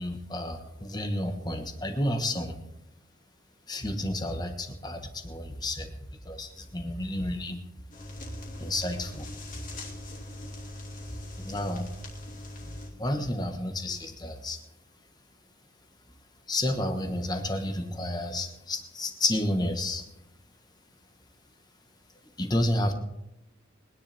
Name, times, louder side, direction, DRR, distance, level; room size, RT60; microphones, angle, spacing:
voice 1, 0.0-2.6 3.7-6.0 6.2-7.6 8.6-9.3 11.4-11.9 13.0-14.6 16.5-20.0 22.4-22.9, left 1 dB, 20° left, 6 dB, 1.3 m, -30 dB
sound 1, 7.9-12.9, left 1 dB, 40° left, 2.7 m, -41 dB
22.5 x 10.0 x 3.5 m, 0.87 s
head